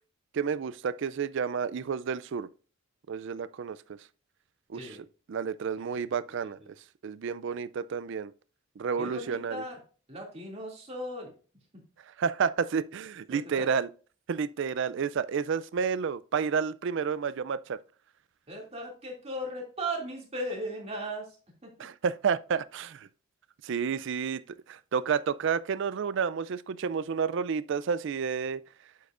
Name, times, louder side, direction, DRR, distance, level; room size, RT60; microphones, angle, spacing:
voice 1, 0.3-2.5 3.1-4.0 4.7-4.8 5.3-6.6 7.0-8.3 8.8-9.6 12.2-13.9 14.3-17.8 21.8-23.1 23.6-28.6, right 6 dB, 60° right, 0.4 m, -30 dB
voice 2, 9.0-9.8 10.1-11.3 11.7-11.8 13.3-13.7 18.5-21.4 21.6-21.9, right 1 dB, 30° right, 2.5 m, -37 dB
8.5 x 7.8 x 2.5 m
head